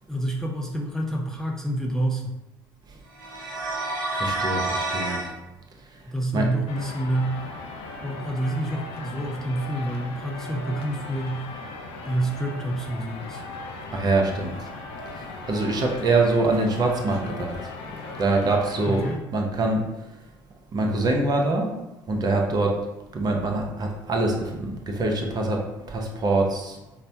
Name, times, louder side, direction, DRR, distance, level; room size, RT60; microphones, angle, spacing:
voice 1, 0.1-2.3 6.1-7.4 8.0-11.4 12.0-13.4 18.9-19.2, right 1 dB, 5° left, -1 dB, 0.5 m, -28 dB
sound 1, 3.1-5.3, right 2 dB, 75° right, 0.7 m, -28 dB
voice 2, 4.2-5.2 6.3-6.5 13.9-14.5 15.5-17.6 18.2-19.9 20.7-21.7 22.1-22.9 23.1-26.8, right 2 dB, 35° right, 1 dB, 0.7 m, -24 dB
sound 2, 6.7-19.2, left 3 dB, 60° left, 0.4 m, -38 dB
4.1 x 2.1 x 2.6 m, 0.99 s
figure-of-eight pair, 60°, 11 cm